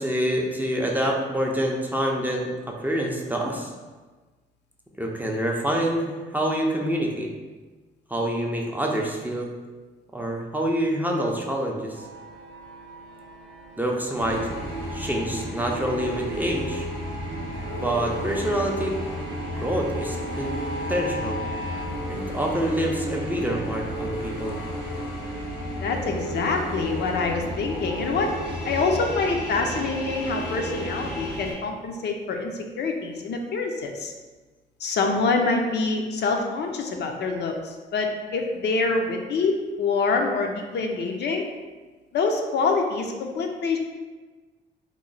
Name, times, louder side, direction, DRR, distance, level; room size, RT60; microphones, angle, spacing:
voice 1, 0.0-3.7 5.0-7.3 8.1-9.5 10.1-12.0 13.8-14.5 14.9-16.9 17.8-19.0 19.6-20.6 20.9-21.5 22.1-24.6, right 1 dB, 10° right, -1 dB, 0.4 m, -26 dB
sound 1, 11.9-21.9, equal, 85° right, 0.4 m, -41 dB
sound 2, 14.2-31.5, equal, 90° left, 1.3 m, -32 dB
voice 2, 25.8-28.3 28.6-34.1 34.8-41.4 42.1-43.8, left 4 dB, 60° left, 3 dB, 0.5 m, -26 dB
3.0 x 2.1 x 3.8 m, 1.3 s
cardioid pair, 90°, 20 cm